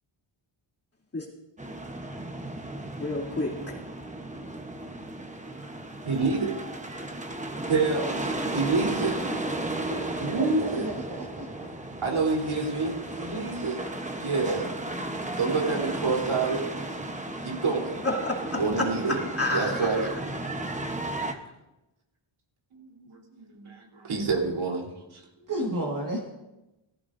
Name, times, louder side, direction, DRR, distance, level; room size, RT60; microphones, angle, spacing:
sound 1, 1.6-21.3, right 2 dB, 15° right, 1.0 m, -34 dB
voice 1, 3.0-3.7 18.0-18.6 19.1-20.1, left 2 dB, 30° left, -3 dB, 2.7 m, -30 dB
voice 2, 6.0-6.5 7.7-9.2 10.2-10.8 12.0-13.8 14.2-14.7 15.4-16.7 17.4-18.0 18.5-19.2 19.5-20.1 22.7-25.2, right 4 dB, 70° right, -1 dB, 3.7 m, -28 dB
voice 3, 9.9-11.7 25.5-26.3, right 1 dB, 40° right, -2 dB, 1.8 m, -33 dB
18.5 x 15.0 x 2.6 m, 0.96 s
wide cardioid pair, 145°, 50 cm